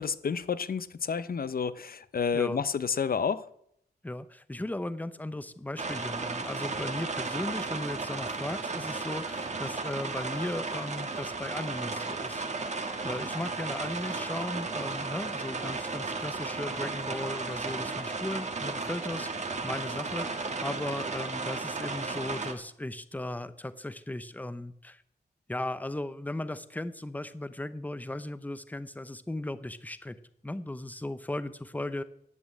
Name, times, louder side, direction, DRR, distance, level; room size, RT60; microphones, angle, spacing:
voice 1, 0.0-3.5, left 6 dB, 60° left, 15 dB, 0.7 m, -30 dB
voice 2, 4.0-12.5 12.7-25.0 25.5-30.2 30.4-32.0, left 1 dB, 10° left, 13 dB, 0.7 m, -37 dB
sound 1, 5.8-22.5, right 3 dB, 40° right, 1.4 m, -34 dB
11.0 x 8.6 x 8.4 m, 0.72 s
wide cardioid pair, 125°, 17 cm